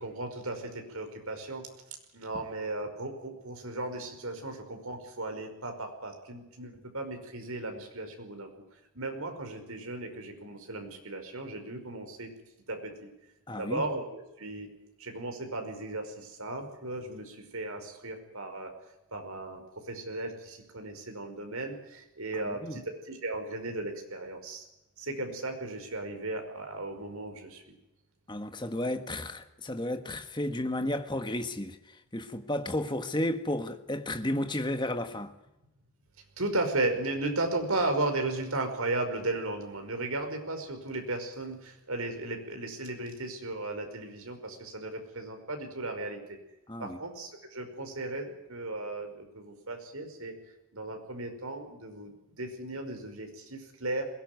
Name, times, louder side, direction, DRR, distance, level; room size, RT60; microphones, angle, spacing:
voice 1, 0.0-1.7 2.1-8.5 8.9-12.3 12.7-13.1 13.6-14.7 15.0-18.7 19.1-24.7 25.0-27.7 36.4-46.4 46.8-50.4 50.7-54.1, right 2 dB, 75° right, 5.3 m, -35 dB
voice 2, 13.5-13.8 22.6-22.8 28.3-31.8 32.1-35.3 46.7-47.0, left 1 dB, 20° left, 1.5 m, -32 dB
21.5 x 18.5 x 9.5 m
head